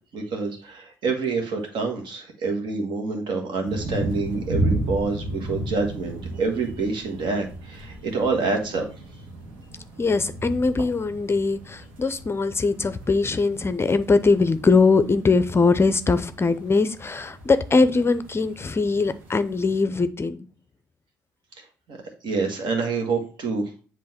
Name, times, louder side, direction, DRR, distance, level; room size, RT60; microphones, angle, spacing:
voice 1, 0.1-8.9 21.6-22.0 22.2-23.7, right 4 dB, 60° right, 3 dB, 1.7 m, -27 dB
sound 1, 3.6-19.8, right 2 dB, 75° right, 1.5 m, -34 dB
voice 2, 10.0-20.5, left 4 dB, 25° left, 12 dB, 0.6 m, -21 dB
7.7 x 3.0 x 4.3 m, 0.39 s
hypercardioid pair, 50°, 9 cm